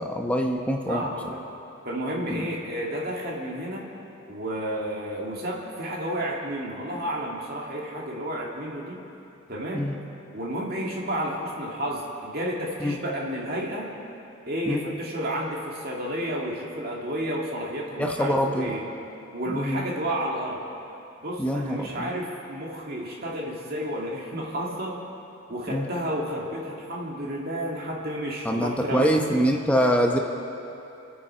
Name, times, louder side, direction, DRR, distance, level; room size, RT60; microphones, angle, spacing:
voice 1, 0.0-1.1 2.3-2.5 9.7-9.9 12.8-13.0 14.7-14.8 18.0-18.7 19.5-19.8 21.4-22.1 25.7-25.9 28.4-30.2, equal, 5° left, 2 dB, 0.8 m, -24 dB
voice 2, 0.9-1.5 1.8-3.9 4.3-9.0 9.5-9.9 10.3-13.9 14.5-18.8 19.3-20.6 21.2-25.1 25.5-29.5, equal, 50° right, -2 dB, 2.2 m, -31 dB
28.0 x 9.8 x 4.4 m, 2.9 s
head